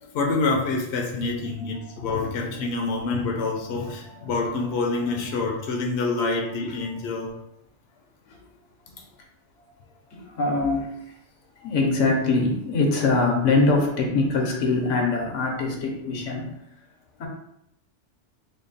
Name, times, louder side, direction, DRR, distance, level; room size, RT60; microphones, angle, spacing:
voice 1, 0.0-7.4, left 3 dB, 65° left, 0 dB, 0.8 m, -27 dB
voice 2, 10.1-11.0 11.6-16.5 17.2-17.3, left 3 dB, 85° left, 1 dB, 1.1 m, -23 dB
3.6 x 2.0 x 3.9 m, 0.79 s
omnidirectional pair, 1.3 m